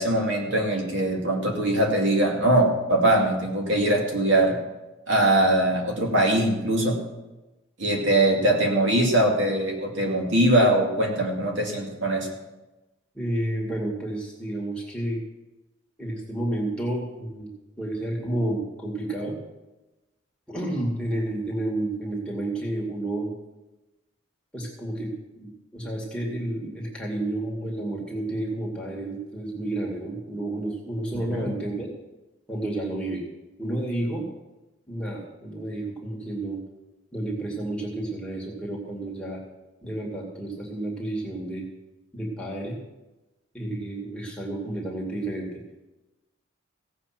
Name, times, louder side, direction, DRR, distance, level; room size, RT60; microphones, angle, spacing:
voice 1, 0.0-4.6 5.1-7.0 7.8-12.3 31.3-31.5, right 1 dB, 65° right, 0 dB, 2.3 m, -22 dB
voice 2, 13.1-15.2 16.0-17.5 17.8-19.4 20.5-23.3 24.5-31.9 32.5-33.2 33.6-34.3 34.9-36.6 37.1-39.4 39.8-41.7 42.1-42.8 43.5-45.5, right 1 dB, 5° left, -3 dB, 2.4 m, -30 dB
16.5 x 7.8 x 6.0 m, 1.1 s
head